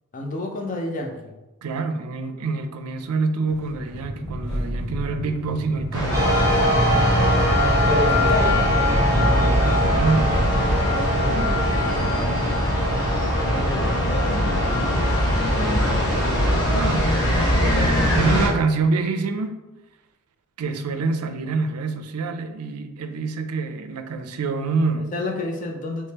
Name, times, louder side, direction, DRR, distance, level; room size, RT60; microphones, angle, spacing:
voice 1, 0.1-1.3 7.9-8.7 10.8-11.6 13.4-14.0 14.3-15.1 15.3-15.9 17.3-18.1 25.1-26.1, left 2 dB, 35° left, 2 dB, 0.5 m, -29 dB
voice 2, 1.6-6.4 9.2-10.5 16.7-17.1 17.6-19.5 20.6-25.1, right 4 dB, 85° right, 8 dB, 0.4 m, -26 dB
sound 1, 3.5-12.5, equal, 70° left, 1.4 m, -32 dB
sound 2, 5.9-18.5, equal, 20° left, 1.0 m, -22 dB
sound 3, 6.1-17.3, left 1 dB, 15° right, 0.8 m, -24 dB
3.5 x 3.1 x 2.8 m, 1.1 s
head